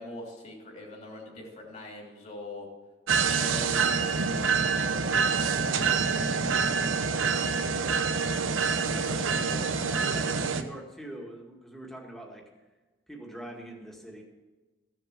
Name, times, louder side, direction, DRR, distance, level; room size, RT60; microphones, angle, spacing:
voice 1, 0.0-2.7 3.3-5.4, left 1 dB, 35° left, 0 dB, 2.9 m, -41 dB
sound 1, 3.1-10.6, right 5 dB, 80° right, 0.8 m, -26 dB
voice 2, 6.0-6.7 7.0-12.5 13.1-14.2, right 1 dB, ahead, 0 dB, 1.8 m, -44 dB
14.5 x 7.5 x 7.3 m, 1.2 s
head